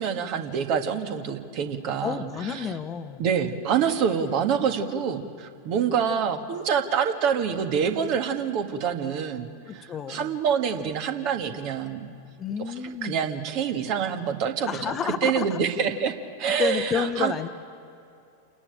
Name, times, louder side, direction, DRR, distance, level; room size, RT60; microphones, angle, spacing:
voice 1, 0.0-2.7 3.2-12.1 12.7-12.8 13.0-16.1 16.4-17.3, right 7 dB, 45° right, 6 dB, 1.7 m, -26 dB
voice 2, 2.0-3.2 9.7-10.4 12.4-13.2 14.6-15.6 16.6-17.5, left 7 dB, 25° left, 9 dB, 1.0 m, -30 dB
28.5 x 11.0 x 8.9 m, 2.6 s
figure-of-eight pair, 90°, 0 cm